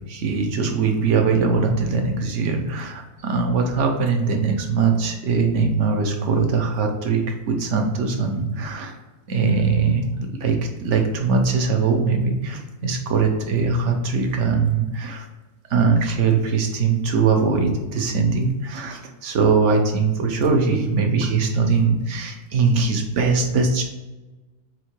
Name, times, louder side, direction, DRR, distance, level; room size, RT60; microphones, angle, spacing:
voice 1, 0.1-9.0 9.3-15.3 15.7-23.8, right 4 dB, 55° right, 3 dB, 1.1 m, -21 dB
7.6 x 2.7 x 4.5 m, 1.1 s
omnidirectional pair, 1.7 m